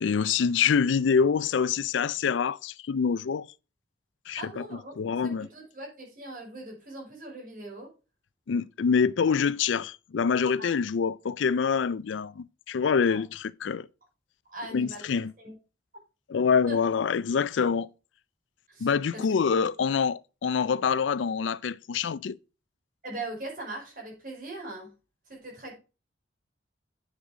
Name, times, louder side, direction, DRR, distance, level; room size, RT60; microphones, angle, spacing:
voice 1, 0.0-3.5 4.3-4.6 5.0-5.5 8.5-13.9 14.7-15.3 16.3-17.9 18.8-22.4, left 6 dB, 85° left, 0.4 m, -26 dB
voice 2, 4.4-4.9 5.2-7.9 10.6-10.8 13.1-13.2 14.5-15.0 15.4-15.5 16.7-16.8 18.7-19.2 23.0-24.9 25.3-25.8, right 2 dB, 45° right, 5.2 m, -40 dB
8.8 x 6.3 x 4.9 m
head